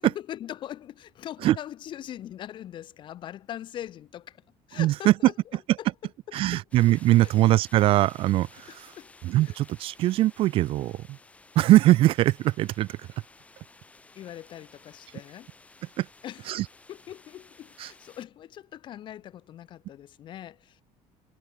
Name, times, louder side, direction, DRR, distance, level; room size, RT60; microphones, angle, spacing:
voice 1, 0.0-4.4 4.7-5.3 5.8-5.9 6.5-6.6 7.2-7.3 8.7-9.1 9.4-9.5 14.2-15.5 16.2-16.5 16.9-20.8, left 11 dB, 40° left, 1.6 m, -41 dB
voice 2, 4.8-5.3 6.3-8.9 9.2-11.2 11.6-13.1 16.0-16.1 16.5-16.7 17.8-17.9, right 15 dB, 45° right, 0.4 m, -22 dB
sound 1, 6.7-18.3, left 3 dB, 10° left, 6.5 m, -54 dB
cardioid pair, 180°, 13 cm